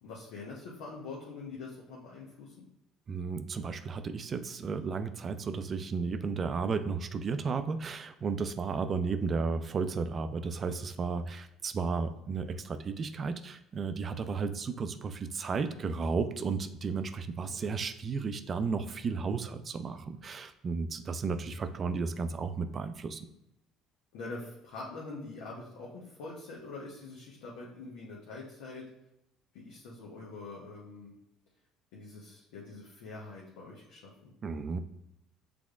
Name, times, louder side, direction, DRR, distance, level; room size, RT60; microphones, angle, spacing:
voice 1, 0.0-2.7 12.3-12.6 17.4-17.6 24.1-28.9 29.5-31.1 31.9-34.3, left 3 dB, 75° left, -4 dB, 0.9 m, -44 dB
voice 2, 3.1-23.3 34.4-34.8, right 5 dB, 40° right, 10 dB, 0.4 m, -33 dB
6.1 x 3.4 x 2.4 m, 0.84 s
hypercardioid pair, 70°, 0 cm